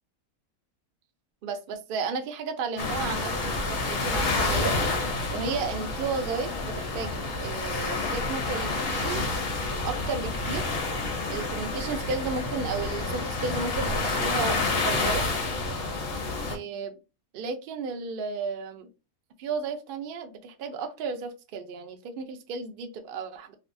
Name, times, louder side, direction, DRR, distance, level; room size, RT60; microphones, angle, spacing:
voice 1, 1.4-4.7 5.3-9.3 9.8-10.7 11.3-15.3 16.4-16.9 17.3-18.9 19.4-23.5, right 5 dB, 80° right, 6 dB, 0.4 m, -33 dB
sound 1, 2.8-16.6, left 3 dB, 55° left, 0.7 m, -29 dB
2.7 x 2.2 x 2.5 m, 0.30 s
omnidirectional pair, 1.5 m